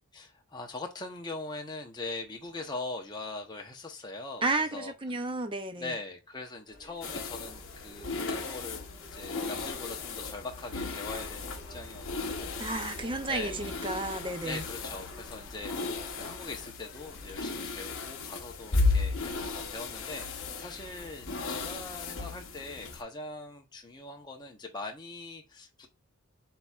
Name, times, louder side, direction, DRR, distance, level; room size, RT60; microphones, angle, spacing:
voice 1, 0.1-4.9 5.8-8.8 9.1-13.7 14.4-15.8 16.1-25.9, left 3 dB, 20° left, 0.8 m, -42 dB
voice 2, 4.4-5.9 12.6-14.7, right 2 dB, 25° right, 0.6 m, -32 dB
sound 1, 6.7-22.1, left 1 dB, 40° left, 2.8 m, -54 dB
sound 2, 7.0-23.0, left 3 dB, 60° left, 0.9 m, -35 dB
7.7 x 2.8 x 2.3 m
head